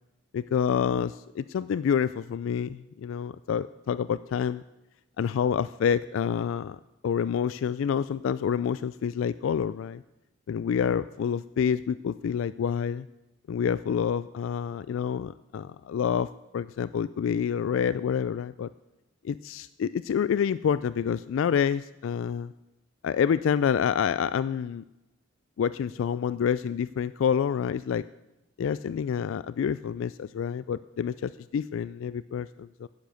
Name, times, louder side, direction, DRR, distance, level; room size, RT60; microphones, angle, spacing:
voice 1, 0.3-4.6 5.2-6.8 7.0-10.0 10.5-13.1 13.5-16.3 16.5-18.7 19.2-22.5 23.0-24.8 25.6-28.0 28.6-32.9, left 7 dB, 75° left, 16 dB, 0.3 m, -28 dB
10.5 x 10.5 x 6.4 m, 0.98 s
head